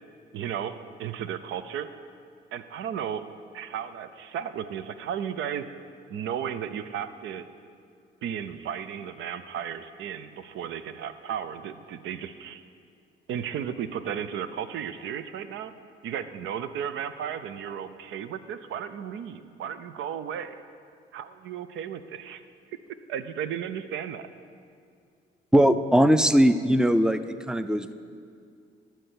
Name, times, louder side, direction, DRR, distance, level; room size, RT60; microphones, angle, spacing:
voice 1, 0.3-1.9 2.5-3.2 3.5-5.7 6.1-7.4 8.2-12.6 13.3-15.7 16.0-20.6 21.1-22.4 23.1-24.3, right 8 dB, 80° right, 12 dB, 0.6 m, -34 dB
voice 2, 25.5-27.2 27.5-27.9, equal, 5° right, 12 dB, 0.4 m, -20 dB
12.0 x 4.6 x 8.4 m, 2.3 s
cardioid pair, 90°, 20 cm